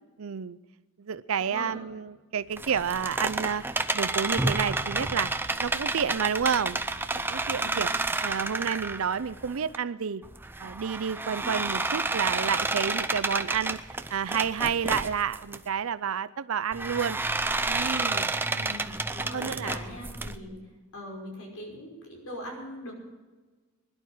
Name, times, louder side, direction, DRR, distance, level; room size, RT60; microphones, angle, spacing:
voice 1, 0.2-0.6 1.0-3.6 3.9-6.8 7.1-7.9 8.2-10.2 10.6-17.2 17.7-18.4 19.3-19.7, right 7 dB, 75° right, 16 dB, 0.5 m, -30 dB
voice 2, 1.4-2.0 7.6-7.9 11.4-11.5 18.4-20.5 20.9-22.9, equal, 85° left, 0 dB, 5.6 m, -41 dB
sound 1, 2.5-9.8 10.2-15.6 16.7-20.4, right 2 dB, 10° right, 0.6 m, -30 dB
21.0 x 11.5 x 4.9 m, 1.3 s
head